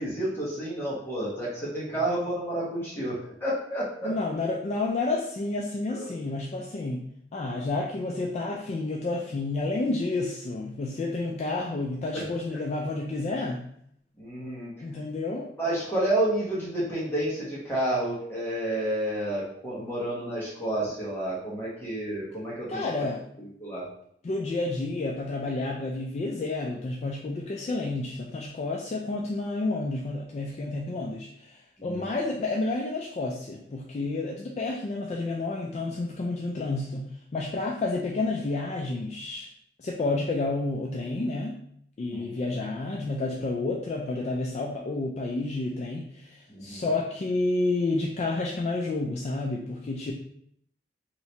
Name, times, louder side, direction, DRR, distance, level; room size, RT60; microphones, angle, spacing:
voice 1, 0.0-4.1 5.9-6.1 12.1-12.3 14.2-14.7 15.6-23.0 23.4-23.8 31.8-32.1 42.1-42.4 46.5-46.9, right 1 dB, 15° left, -7 dB, 1.1 m, -30 dB
voice 2, 4.0-7.0 7.3-13.6 14.8-15.5 22.7-23.2 24.2-37.1 37.3-39.5 39.8-41.5 42.0-50.1, left 2 dB, 40° left, 0 dB, 0.3 m, -30 dB
3.1 x 2.9 x 2.7 m, 0.69 s
head